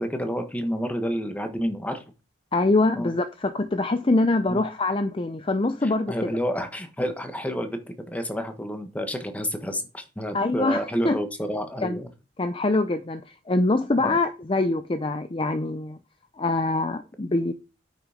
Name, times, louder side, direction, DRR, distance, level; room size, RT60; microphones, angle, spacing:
voice 1, 0.0-2.0 3.0-3.1 4.5-4.6 5.8-7.8 8.1-12.1 13.9-14.2, equal, 10° left, 1.4 m, -29 dB
voice 2, 2.5-6.1 10.3-11.2 11.8-12.0 12.4-16.0 16.4-17.5, left 2 dB, 30° left, 0.5 m, -24 dB
8.7 x 6.1 x 5.1 m
head